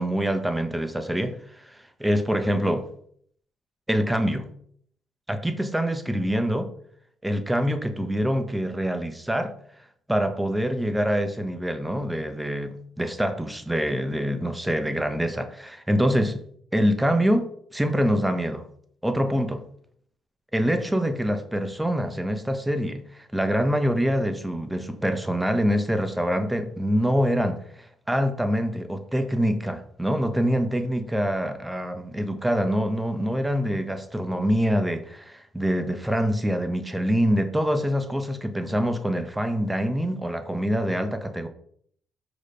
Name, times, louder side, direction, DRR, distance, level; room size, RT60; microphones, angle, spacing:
voice 1, 0.0-2.9 3.9-4.5 5.3-6.7 7.2-9.5 10.1-16.4 16.7-18.6 19.0-19.6 20.5-41.5, equal, 5° right, 8 dB, 1.1 m, -25 dB
6.5 x 5.1 x 5.1 m, 0.62 s
cardioid pair, 90°, 0 cm